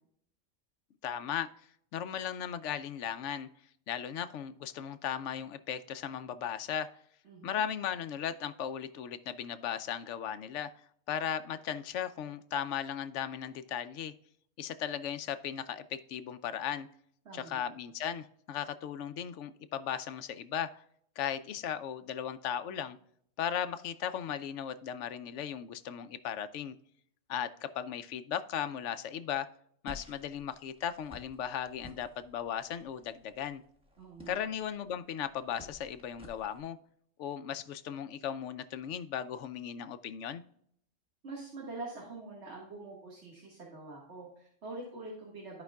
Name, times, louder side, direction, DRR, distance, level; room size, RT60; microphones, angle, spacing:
voice 1, 1.0-1.5 1.9-3.5 3.9-6.9 7.4-10.7 11.1-14.1 14.6-16.9 17.3-20.8 21.2-23.0 23.4-26.8 27.3-29.5 29.8-33.6 34.3-36.8 37.2-40.4, left 9 dB, 75° left, 12 dB, 0.9 m, -37 dB
voice 2, 7.2-7.6 17.3-17.6 34.0-34.4 41.2-45.6, right 2 dB, 65° right, -2 dB, 2.0 m, -45 dB
sound 1, 29.9-36.6, left 1 dB, 5° right, 1.3 m, -54 dB
14.0 x 5.1 x 2.3 m, 0.68 s
omnidirectional pair, 1.3 m